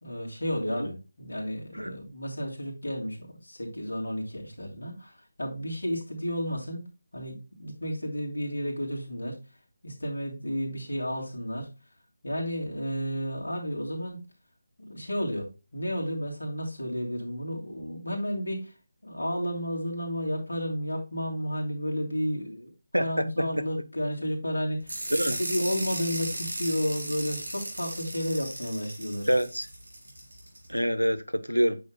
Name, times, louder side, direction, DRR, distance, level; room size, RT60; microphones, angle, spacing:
voice 1, 0.0-6.9 7.1-9.4 9.8-11.7 12.2-14.2 14.8-18.7 19.0-22.7 23.0-25.0 25.4-29.3, equal, 65° left, 2.9 m, -32 dB
voice 2, 22.9-23.5 25.1-25.4 29.3-29.7 30.7-31.8, equal, 90° right, 0.9 m, -26 dB
sound 1, 24.9-30.7, right 1 dB, 70° right, 4.1 m, -36 dB
9.2 x 6.6 x 2.2 m
figure-of-eight pair, 155°, 0 cm